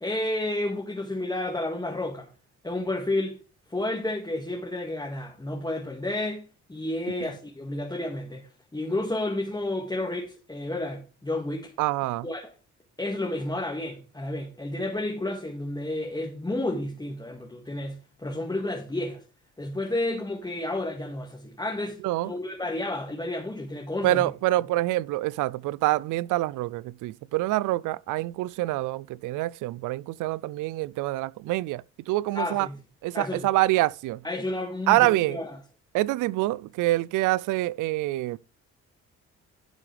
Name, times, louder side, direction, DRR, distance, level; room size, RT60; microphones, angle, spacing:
voice 1, 0.0-2.3 2.6-3.4 3.7-11.7 12.2-12.5 13.0-19.2 19.6-24.3 32.3-32.8 33.1-33.5 34.2-35.6, left 1 dB, 15° left, 2.0 m, -31 dB
voice 2, 11.8-12.3 22.0-22.3 24.0-32.7 33.0-34.2 34.9-35.4 35.9-38.4, right 17 dB, 85° right, 0.4 m, -26 dB
11.5 x 7.2 x 3.4 m
cardioid pair, 90°, 30 cm